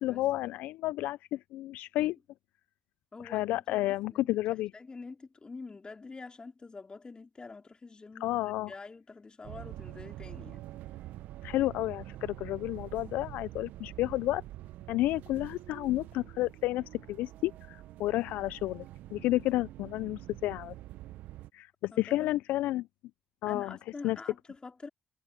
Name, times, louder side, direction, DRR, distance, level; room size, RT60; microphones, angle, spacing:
voice 1, 0.0-2.2 3.2-4.7 8.2-8.7 11.4-14.4 14.9-18.9 19.1-20.7 21.5-22.9 23.4-23.8 24.0-24.2, left 16 dB, 75° left, 0.6 m, -31 dB
voice 2, 3.1-4.2 4.7-8.4 8.7-10.6 21.9-22.3 23.5-24.4 24.6-24.9, left 4 dB, 30° left, 3.7 m, -46 dB
sound 1, 9.4-21.5, right 15 dB, 75° right, 1.1 m, -46 dB
hypercardioid pair, 50°, 3 cm